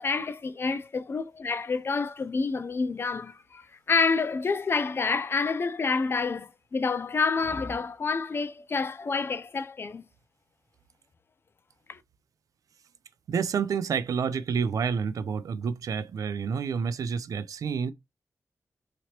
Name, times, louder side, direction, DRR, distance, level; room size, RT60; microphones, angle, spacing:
voice 1, 0.0-10.0 11.9-12.0, left 4 dB, 45° left, 0.3 m, -28 dB
voice 2, 13.3-17.9, right 6 dB, 90° right, 0.3 m, -29 dB
2.9 x 2.8 x 2.9 m
wide cardioid pair, 100°, 6 cm